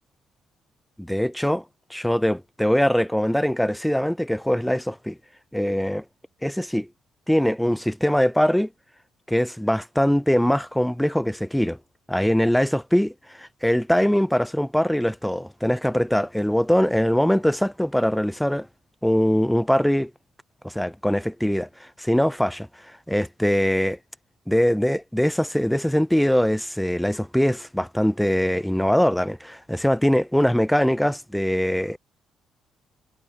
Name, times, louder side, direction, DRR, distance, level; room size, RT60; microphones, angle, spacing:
voice 1, 1.0-1.6 1.9-5.2 5.5-6.0 6.4-6.9 7.3-8.7 9.3-11.8 12.1-18.7 19.0-20.1 20.6-22.7 23.1-24.0 24.5-32.0, equal, 5° left, 0.4 m, -22 dB
cardioid pair, 100°, 0 cm